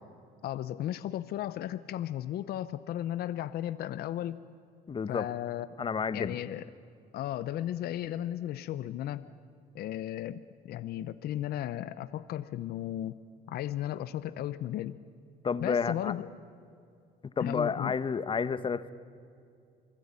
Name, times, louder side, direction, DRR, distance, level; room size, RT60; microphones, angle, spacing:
voice 1, 0.4-4.4 5.1-5.7 6.1-6.6 7.1-9.2 9.7-13.1 13.5-15.0 15.6-16.3 17.4-17.9, left 12 dB, 65° left, 14 dB, 0.8 m, -35 dB
voice 2, 4.9-5.3 5.8-6.4 15.4-16.1 17.4-18.9, left 5 dB, 30° left, 15 dB, 1.1 m, -30 dB
28.0 x 20.5 x 9.8 m, 2.4 s
cardioid pair, 110°, 17 cm